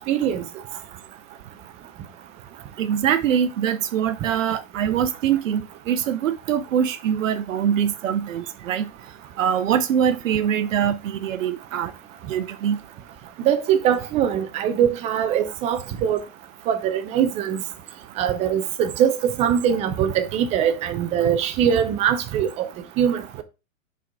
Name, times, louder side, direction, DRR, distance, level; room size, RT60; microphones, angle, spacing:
voice 1, 0.1-0.4 13.4-16.2 16.7-17.6 18.2-22.7 23.0-23.4, right 9 dB, 15° right, 0.6 m, -22 dB
voice 2, 2.8-5.6 5.9-8.8 9.4-11.9 12.3-12.8, right 9 dB, 70° right, 0.9 m, -23 dB
6.1 x 4.8 x 4.7 m
hypercardioid pair, 145°, 41 cm